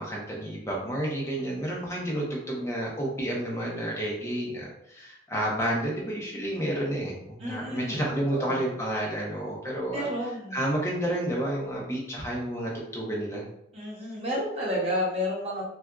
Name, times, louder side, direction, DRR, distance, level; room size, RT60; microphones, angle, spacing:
voice 1, 0.0-10.0 10.5-13.4, right 1 dB, 15° left, -3 dB, 0.7 m, -30 dB
voice 2, 7.4-8.6 9.9-10.6 13.7-15.6, equal, 30° right, -5 dB, 1.0 m, -31 dB
4.2 x 2.4 x 2.3 m, 0.78 s
head